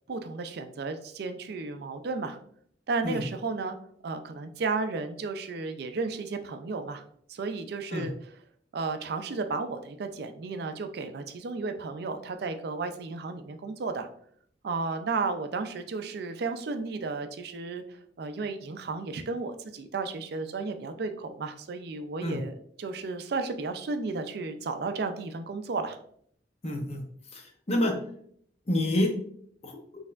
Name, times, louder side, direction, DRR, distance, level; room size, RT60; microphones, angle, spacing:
voice 1, 0.1-2.4 2.9-3.7 4.0-7.0 7.3-8.1 8.7-14.1 14.6-22.5 22.8-26.0, right 4 dB, 60° right, 7 dB, 0.4 m, -33 dB
voice 2, 26.6-27.0 27.3-28.0 28.7-29.1 29.6-29.8, left 1 dB, 35° left, 3 dB, 0.7 m, -28 dB
4.3 x 3.3 x 2.4 m, 0.63 s
head